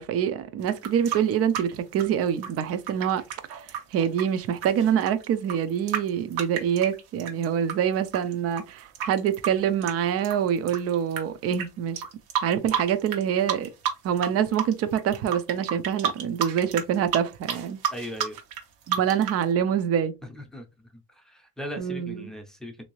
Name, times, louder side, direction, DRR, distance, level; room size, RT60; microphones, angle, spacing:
voice 1, 0.0-3.2 3.5-3.6 3.9-12.0 12.4-13.7 14.0-17.8 18.9-20.1 21.8-22.3, right 9 dB, 50° right, 0.6 m, -25 dB
sound 1, 0.6-7.7 8.1-11.2 11.5-11.7 12.0-13.2 13.5-14.3 14.5-19.4, right 8 dB, 90° right, 1.1 m, -31 dB
voice 2, 17.9-18.4 20.2-20.7 20.9-22.8, equal, ahead, 0.7 m, -38 dB
3.4 x 2.7 x 3.1 m
cardioid pair, 150°, 30 cm